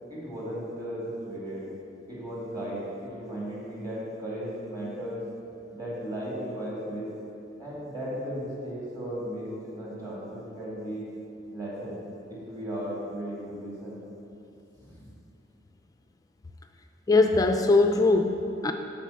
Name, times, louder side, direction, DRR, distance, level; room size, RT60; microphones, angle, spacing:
voice 1, 0.1-1.6 2.1-5.2 5.7-7.1 7.6-11.1 11.5-12.0 12.3-14.0 14.8-15.1, equal, 20° right, -7 dB, 2.2 m, -36 dB
voice 2, 17.1-18.7, left 3 dB, 20° left, 5 dB, 0.3 m, -21 dB
9.3 x 4.2 x 7.0 m, 2.7 s
head